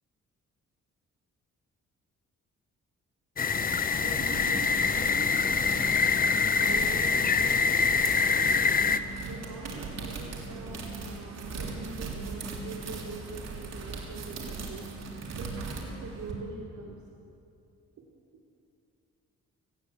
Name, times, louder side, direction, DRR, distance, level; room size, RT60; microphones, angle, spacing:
sound 1, 3.4-9.0, left 5 dB, 30° left, 0.7 m, -25 dB
sound 2, 3.7-16.3, right 3 dB, 60° right, 3.8 m, -39 dB
voice 1, 4.0-8.9 9.3-14.9 15.3-17.0, right 3 dB, 85° right, -3 dB, 3.0 m, -44 dB
19.5 x 16.5 x 8.4 m, 2.7 s
cardioid pair, 125°, 29 cm